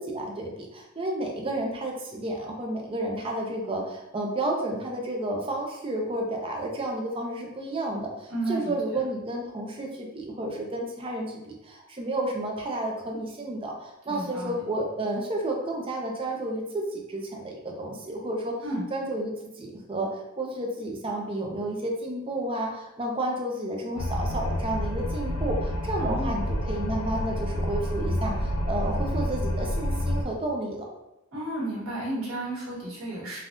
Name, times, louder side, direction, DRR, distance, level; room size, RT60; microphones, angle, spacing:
voice 1, 0.0-18.6 18.9-30.8, right 1 dB, 25° right, 0 dB, 0.4 m, -31 dB
voice 2, 8.3-8.7 14.1-14.6 18.6-18.8 26.0-26.4 31.3-33.4, right 1 dB, 70° right, -7 dB, 1.4 m, -32 dB
sound 1, 24.0-30.2, left 1 dB, 80° left, 0.5 m, -28 dB
3.4 x 2.3 x 2.5 m, 0.92 s
head